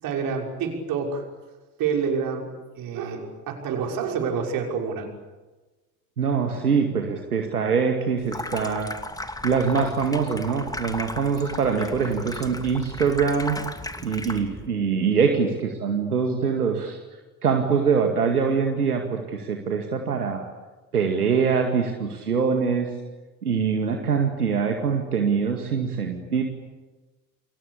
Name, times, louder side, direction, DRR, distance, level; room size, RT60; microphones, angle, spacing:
voice 1, 0.0-1.2 1.8-2.5 2.8-5.1, right 6 dB, 45° right, 2 dB, 6.3 m, -27 dB
voice 2, 6.2-8.9 9.4-13.6 14.0-17.0 17.4-20.4 20.9-22.9 23.4-26.4, right 6 dB, 80° right, 3 dB, 2.2 m, -23 dB
Water tap faucet / Sink (filling or washing), 8.2-14.7, left 2 dB, 10° left, 2.6 m, -35 dB
29.0 x 23.5 x 8.5 m, 1.2 s
figure-of-eight pair, 65°, 45 cm